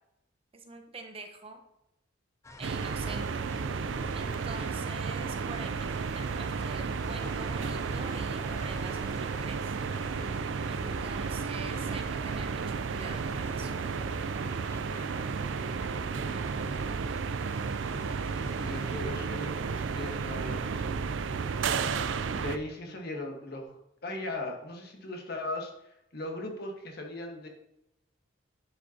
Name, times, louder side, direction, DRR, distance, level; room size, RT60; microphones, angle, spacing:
voice 1, 0.5-1.6 2.6-3.5 4.1-9.7 10.7-13.7, right 3 dB, 30° right, 4 dB, 0.8 m, -45 dB
sound 1, 2.4-19.0, left 1 dB, 15° left, 0.5 m, -49 dB
sound 2, 2.6-22.6, right 5 dB, 75° right, 0.4 m, -33 dB
voice 2, 15.2-17.2 18.6-21.0 22.3-27.5, left 1 dB, 55° left, 2 dB, 1.3 m, -39 dB
10.0 x 5.2 x 2.8 m, 0.82 s
head